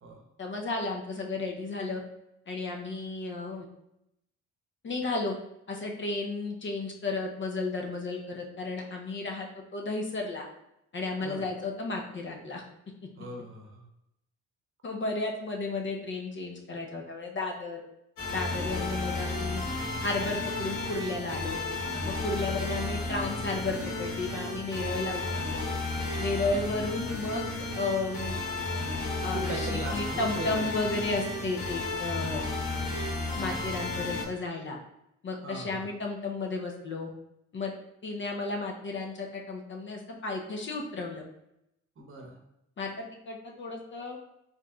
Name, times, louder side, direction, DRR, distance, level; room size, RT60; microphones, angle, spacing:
voice 1, 0.4-2.0 2.5-3.7 4.8-5.3 5.7-9.5 9.7-10.4 10.9-12.6 14.8-17.8 18.3-19.6 20.0-21.6 22.0-25.7 26.2-28.4 29.2-32.5 33.4-34.8 35.2-37.1 37.5-37.7 38.0-41.2 42.8-44.2, left 3 dB, 40° left, 1 dB, 0.6 m, -33 dB
voice 2, 11.2-11.5 13.2-13.8 22.3-22.8 26.4-26.6 29.2-30.6 30.9-31.0 32.7-33.1 35.4-35.9 42.0-42.4, right 2 dB, 45° right, 2 dB, 0.9 m, -40 dB
sound 1, 18.2-34.2, left 2 dB, 75° left, 1.3 m, -33 dB
4.3 x 3.0 x 2.3 m, 0.82 s
cardioid pair, 90°, 30 cm